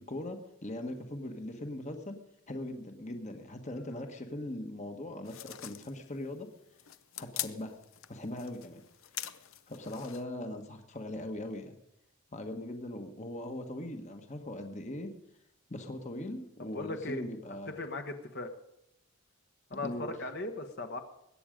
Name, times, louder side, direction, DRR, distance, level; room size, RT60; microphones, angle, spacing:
voice 1, 0.0-2.2 2.5-6.5 7.2-7.8 8.1-8.8 9.3-11.8 12.3-15.1 15.7-17.7 19.8-20.1, left 1 dB, 35° left, 5 dB, 1.3 m, -40 dB
sound 1, 5.2-10.2, left 13 dB, 80° left, 0.8 m, -43 dB
voice 2, 16.6-17.3 17.8-18.5 19.7-21.0, left 2 dB, 55° left, 5 dB, 1.3 m, -38 dB
21.5 x 8.8 x 5.1 m, 0.82 s
head